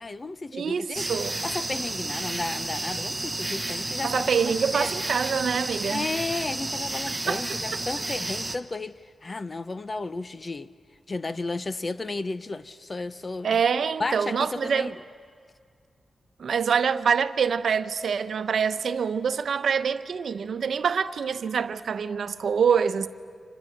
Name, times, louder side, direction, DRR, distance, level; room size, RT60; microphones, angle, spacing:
voice 1, 0.0-1.1 1.4-4.9 5.9-10.7 11.1-13.6 14.0-14.9, left 3 dB, 35° left, 0.7 m, -33 dB
voice 2, 0.5-1.4 4.0-6.1 7.1-7.4 13.4-14.9 16.4-23.1, right 6 dB, 80° right, 0.8 m, -25 dB
sound 1, 0.9-8.6, right 2 dB, 20° right, 1.1 m, -31 dB
30.0 x 26.5 x 6.6 m
wide cardioid pair, 85°, 0 cm